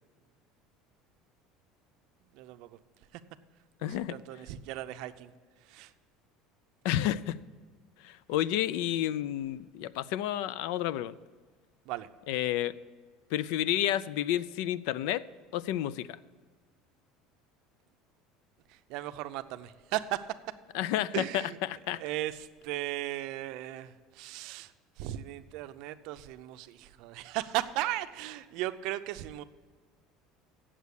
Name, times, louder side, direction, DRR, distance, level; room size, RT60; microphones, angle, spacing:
voice 1, 2.3-2.8 3.1-3.2 3.8-5.3 5.7-5.9 11.9-12.1 18.7-20.2 21.1-21.6 22.0-24.7 25.0-29.4, right 15 dB, 60° right, 11 dB, 0.5 m, -36 dB
voice 2, 3.8-4.2 6.8-7.4 8.0-11.2 12.3-12.8 13.3-15.2 15.5-16.2 20.7-22.0, left 12 dB, 70° left, 18 dB, 0.4 m, -30 dB
8.2 x 7.4 x 8.3 m, 1.5 s
cardioid pair, 155°, 0 cm